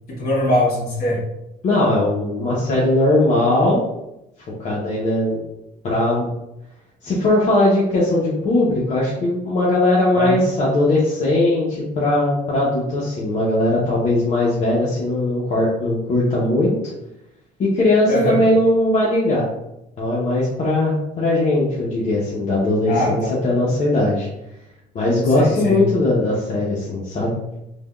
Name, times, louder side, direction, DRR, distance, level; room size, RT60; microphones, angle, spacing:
voice 1, 0.1-1.2 10.1-10.4 18.1-18.4 22.9-23.3 25.3-25.8, left 1 dB, 65° left, -5 dB, 1.5 m, -21 dB
voice 2, 1.6-3.8 4.6-5.4 5.8-6.3 7.0-16.7 17.6-19.4 20.0-24.3 24.9-27.4, left 1 dB, 45° left, -6 dB, 0.7 m, -19 dB
3.3 x 2.2 x 2.3 m, 0.88 s
cardioid pair, 110°, 17 cm